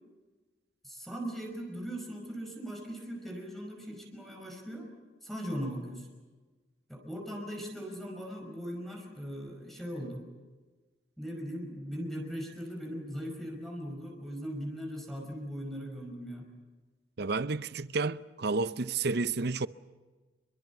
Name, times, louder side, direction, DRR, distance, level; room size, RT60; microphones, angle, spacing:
voice 1, 0.8-4.9 5.2-6.1 6.9-10.2 11.2-16.5, equal, ahead, 5.2 m, -39 dB
voice 2, 17.2-19.7, right 3 dB, 60° right, 0.7 m, -31 dB
28.0 x 23.0 x 7.1 m
head